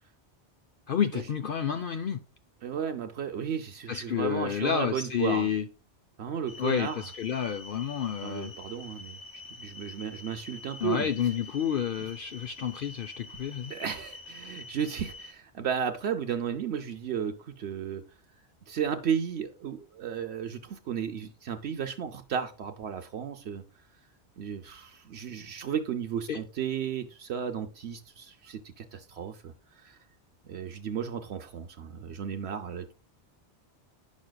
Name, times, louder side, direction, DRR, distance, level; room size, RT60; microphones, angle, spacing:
voice 1, 0.9-2.2 3.9-5.7 6.6-8.5 10.8-13.7 26.3-26.4, left 8 dB, 60° left, 0.7 m, -30 dB
voice 2, 2.6-5.5 6.2-7.0 8.2-9.2 9.6-11.1 13.7-18.0 18.7-23.6 24.4-29.5 29.8-30.0 30.5-32.9, right 8 dB, 70° right, 0.9 m, -34 dB
sound 1, 6.5-15.3, left 3 dB, 80° left, 1.4 m, -46 dB
9.9 x 6.3 x 2.2 m
omnidirectional pair, 1.2 m